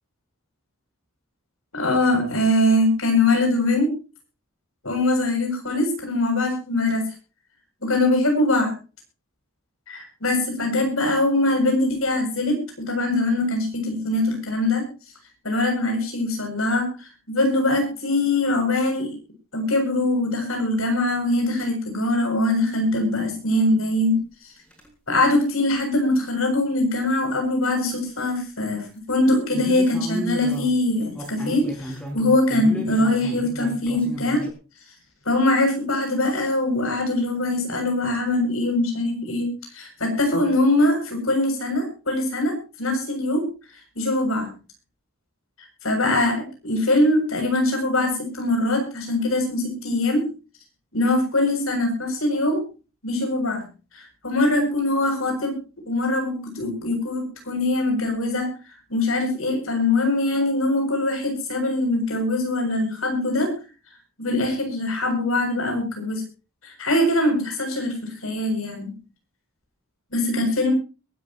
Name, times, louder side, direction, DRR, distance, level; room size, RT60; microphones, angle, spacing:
voice 1, 1.7-3.9 4.8-7.1 7.8-8.7 9.9-14.9 15.4-19.1 19.5-24.2 25.1-34.5 35.3-43.4 43.9-44.5 45.8-50.3 50.9-52.6 53.0-53.6 54.0-58.5 58.9-63.6 64.2-66.2 66.6-68.9 70.1-70.7, left 2 dB, 80° left, 4 dB, 7.5 m, -22 dB
sound 1, 24.7-24.9 29.5-34.5, equal, 5° left, 6.6 m, -34 dB
22.5 x 13.5 x 3.0 m, 0.34 s
head